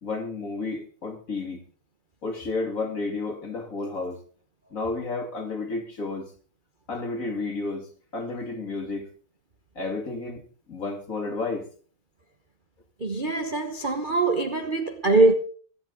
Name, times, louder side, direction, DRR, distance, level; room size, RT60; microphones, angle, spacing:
voice 1, 0.0-1.6 2.2-4.2 4.7-6.3 6.9-9.1 9.8-10.4 10.7-11.7, left 3 dB, 40° left, 2.5 m, -31 dB
voice 2, 13.0-15.3, right 2 dB, 30° right, 1.0 m, -22 dB
25.5 x 8.7 x 3.7 m
omnidirectional pair, 2.3 m